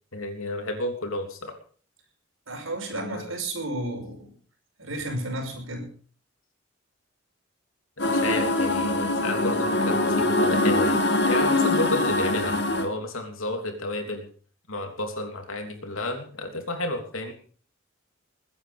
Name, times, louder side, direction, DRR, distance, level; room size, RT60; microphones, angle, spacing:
voice 1, 0.1-1.5 2.9-3.3 8.1-11.0 11.2-14.2 14.7-17.3, left 2 dB, 80° left, 5 dB, 3.2 m, -31 dB
voice 2, 2.5-4.3 4.8-5.9, right 1 dB, 75° right, 3 dB, 5.5 m, -32 dB
sound 1, 8.0-12.8, left 2 dB, 55° left, 2.3 m, -23 dB
21.5 x 9.5 x 5.2 m, 0.43 s
head